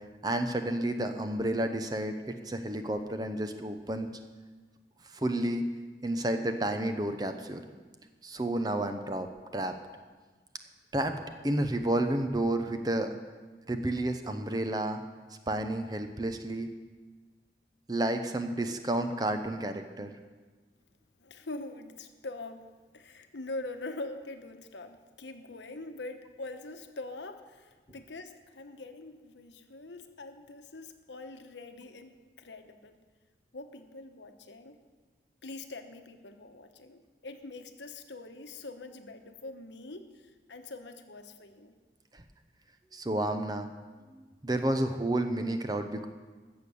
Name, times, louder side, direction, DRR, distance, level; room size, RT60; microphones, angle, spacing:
voice 1, 0.2-4.1 5.1-5.7 6.0-7.6 8.2-9.3 9.5-9.8 10.9-11.1 11.4-13.2 13.7-15.0 15.5-16.7 17.9-20.1 42.9-43.7 44.1-46.1, right 1 dB, 20° right, 7 dB, 0.7 m, -31 dB
voice 2, 21.2-33.0 33.5-34.8 35.4-41.7, left 2 dB, 85° left, 7 dB, 1.1 m, -44 dB
14.5 x 6.9 x 7.1 m, 1.4 s
head